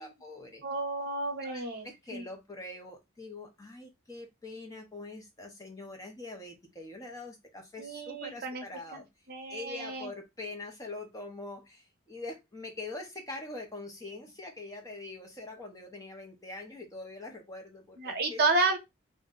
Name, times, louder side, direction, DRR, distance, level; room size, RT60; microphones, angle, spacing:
voice 1, 0.0-0.6 1.4-9.1 9.5-18.4, left 2 dB, 15° left, 0.5 m, -44 dB
voice 2, 0.6-2.3 7.8-8.6 8.9-9.0 9.3-10.1 18.0-18.8, right 3 dB, 45° right, 0.7 m, -31 dB
2.6 x 2.1 x 3.6 m
head